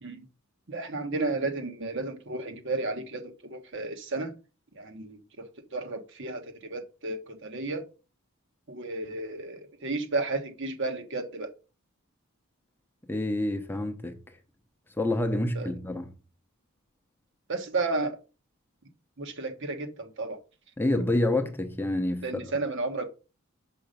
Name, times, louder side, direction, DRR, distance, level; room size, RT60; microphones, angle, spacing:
voice 1, 0.7-4.3 4.7-5.2 5.7-7.9 8.7-11.5 15.5-15.7 17.5-18.2 19.2-20.4 22.2-23.1, right 3 dB, 60° right, 1.3 m, -32 dB
voice 2, 13.1-14.2 15.0-16.1 20.8-22.3, left 1 dB, 10° left, 0.7 m, -27 dB
5.8 x 5.3 x 5.2 m
head